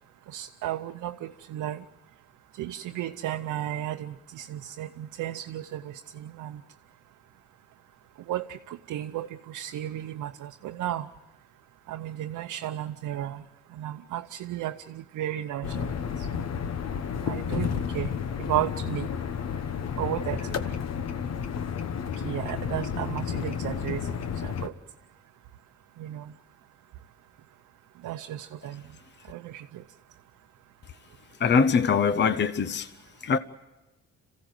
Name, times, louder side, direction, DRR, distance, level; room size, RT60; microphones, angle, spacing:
voice 1, 0.3-1.8 2.6-6.6 8.3-11.1 11.9-13.4 13.7-15.9 16.3-16.4 17.3-18.1 18.4-19.1 20.0-20.5 22.2-24.0 24.4-24.7 26.0-26.3 28.0-28.8 29.3-29.8, right 12 dB, 80° right, 0.8 m, -34 dB
sound 1, 15.6-24.7, left 7 dB, 60° left, 1.2 m, -31 dB
voice 2, 31.4-32.9 33.2-33.4, left 5 dB, 35° left, 0.8 m, -22 dB
27.0 x 16.0 x 9.2 m
cardioid pair, 90°, 30 cm